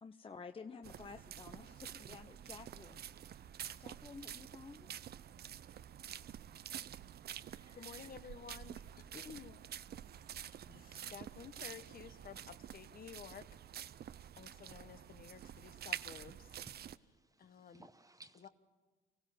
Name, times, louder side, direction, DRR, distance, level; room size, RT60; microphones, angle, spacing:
voice 1, 0.0-3.0 3.8-4.9 7.4-8.0, left 5 dB, 25° left, 8 dB, 0.8 m, -52 dB
sound 1, 0.8-17.0, right 10 dB, 55° right, 0.5 m, -49 dB
voice 2, 7.7-9.6 10.7-13.5 13.9-14.0 14.4-16.6 17.4-17.9 18.3-18.5, left 7 dB, 45° left, 11 dB, 1.2 m, -53 dB
voice 3, 16.7-18.5, right 2 dB, 15° right, 9 dB, 1.0 m, -60 dB
24.5 x 15.5 x 7.7 m, 1.3 s
cardioid pair, 90°, 20 cm